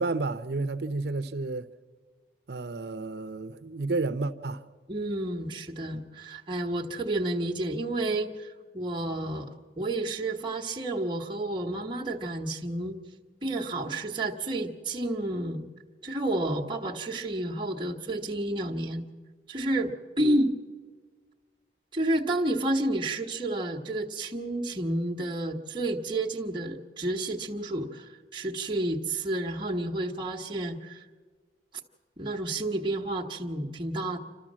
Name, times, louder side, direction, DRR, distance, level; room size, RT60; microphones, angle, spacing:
voice 1, 0.0-1.7 2.5-4.6 5.9-6.0, right 3 dB, 65° right, 0.7 m, -31 dB
voice 2, 4.9-13.0 13.4-15.7 16.0-19.1 19.5-20.5 21.9-31.0 32.2-34.2, right 1 dB, 25° right, 1.4 m, -30 dB
28.0 x 13.0 x 7.4 m
head